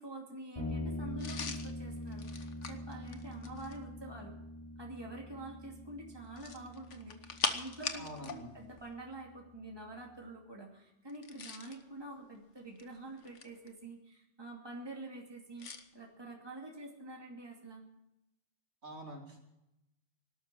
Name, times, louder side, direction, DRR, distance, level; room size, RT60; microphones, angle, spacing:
voice 1, 0.0-4.3 4.8-17.8, right 2 dB, 20° right, 0 dB, 2.6 m, -47 dB
sound 1, 0.5-10.0, left 1 dB, 25° left, 6.1 m, -44 dB
sound 2, 1.2-3.9 6.3-8.4 8.7-8.9 11.1-11.8 12.6-13.7 15.6-15.8, left 5 dB, 75° left, 1.6 m, -41 dB
voice 2, 7.9-8.5 18.8-19.4, right 1 dB, 65° right, 0 dB, 3.4 m, -46 dB
18.5 x 12.5 x 6.1 m, 0.87 s
omnidirectional pair, 1.3 m